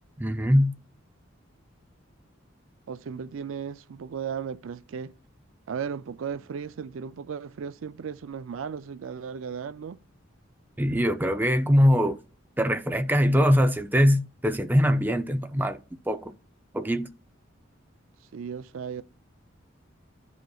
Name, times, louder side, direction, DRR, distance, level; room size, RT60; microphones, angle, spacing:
voice 1, 0.2-0.7 10.8-12.2 12.6-16.3 16.7-17.1, equal, 10° right, 0.5 m, -22 dB
voice 2, 2.9-5.1 5.7-10.0 18.3-19.0, right 7 dB, 85° right, 0.4 m, -35 dB
14.5 x 5.2 x 2.3 m
head